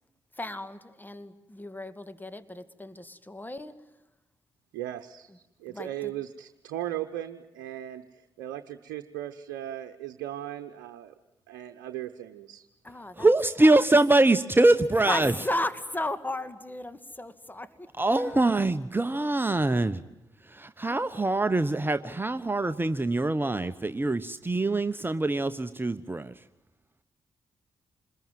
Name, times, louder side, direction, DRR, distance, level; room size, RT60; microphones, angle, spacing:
voice 1, 0.3-3.8 5.7-6.2 12.8-13.3 13.6-13.9 15.0-17.9 18.2-18.6, left 1 dB, 20° left, 12 dB, 2.2 m, -35 dB
voice 2, 4.7-8.0 8.4-11.1 11.5-12.6, right 13 dB, 85° right, 6 dB, 0.9 m, -37 dB
voice 3, 13.2-15.3 18.0-20.0 20.5-26.3, right 2 dB, 20° right, 11 dB, 1.1 m, -24 dB
27.5 x 21.0 x 9.3 m, 0.96 s
hypercardioid pair, 40°, 10 cm